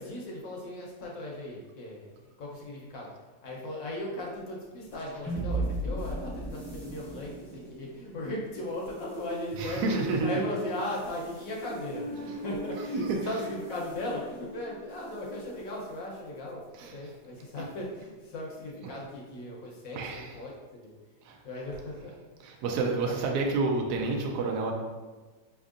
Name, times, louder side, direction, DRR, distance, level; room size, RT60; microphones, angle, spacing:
voice 1, 0.0-2.1 2.4-3.1 3.4-16.6 16.9-20.9 21.4-22.1 22.7-23.3, left 1 dB, 60° left, -3 dB, 1.0 m, -37 dB
sound 1, 4.9-15.4, right 2 dB, ahead, 0.4 m, -38 dB
voice 2, 9.6-10.4 12.9-13.2 16.7-17.1 19.9-20.3 21.2-21.4 22.4-24.7, right 3 dB, 70° right, 1 dB, 1.0 m, -29 dB
5.2 x 3.5 x 2.4 m, 1.3 s
omnidirectional pair, 2.0 m